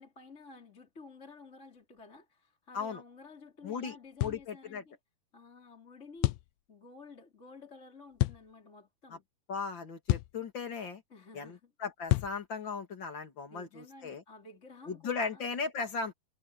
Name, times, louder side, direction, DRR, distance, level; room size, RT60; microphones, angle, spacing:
voice 1, 0.0-5.0 5.3-6.4 6.7-9.3 11.1-11.7 13.5-15.5, left 3 dB, 20° left, 3.7 m, -52 dB
voice 2, 3.6-3.9 4.2-4.8 9.5-11.0 11.3-14.2 14.9-16.1, left 5 dB, 35° left, 2.8 m, -37 dB
sound 1, 4.2-4.4 6.2-6.5 8.2-8.4 10.1-10.4 12.1-12.4, left 19 dB, 85° left, 2.5 m, -28 dB
omnidirectional pair, 4.2 m